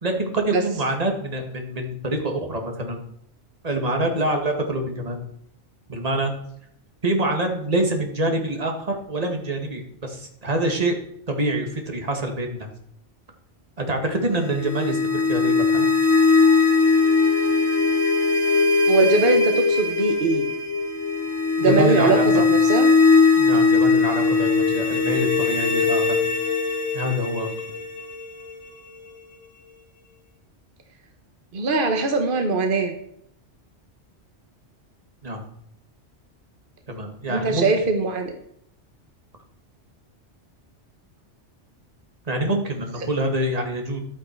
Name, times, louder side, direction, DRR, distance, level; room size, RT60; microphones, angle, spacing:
voice 1, 0.0-3.0 3.6-5.2 5.9-6.3 7.0-11.0 11.3-12.7 13.8-15.9 21.6-22.5 23.4-26.2 26.9-27.5 35.2-35.4 36.9-37.7 42.3-44.0, right 1 dB, 35° right, 3 dB, 2.0 m, -25 dB
sound 1, 14.4-29.4, left 4 dB, 60° left, 2.2 m, -20 dB
voice 2, 18.9-20.5 21.6-22.2 22.5-22.9 31.5-32.9 37.3-38.3, right 3 dB, 50° right, 5 dB, 1.3 m, -21 dB
11.5 x 9.1 x 4.6 m, 0.71 s
omnidirectional pair, 1.2 m